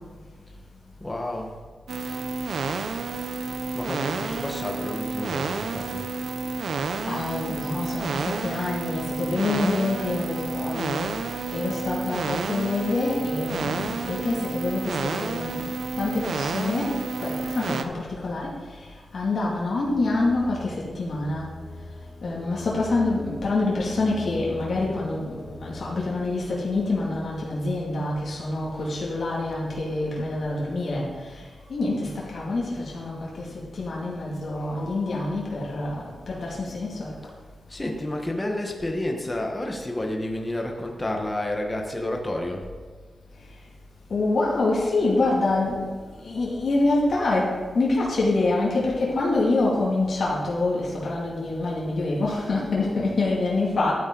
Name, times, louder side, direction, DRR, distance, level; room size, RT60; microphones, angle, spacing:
voice 1, 1.0-1.6 2.0-2.2 3.7-6.1 37.7-42.7, left 1 dB, 15° left, 1 dB, 1.1 m, -30 dB
sound 1, 1.9-17.8, right 4 dB, 75° right, 0.7 m, -30 dB
voice 2, 7.0-18.9 19.1-21.5 22.2-31.4 31.7-37.1 44.1-45.9 46.2-53.9, left 2 dB, 60° left, -5 dB, 2.4 m, -26 dB
sound 2, 19.7-29.5, left 2 dB, ahead, 2.1 m, -43 dB
12.0 x 9.0 x 3.9 m, 1.5 s
wide cardioid pair, 155°, 0 cm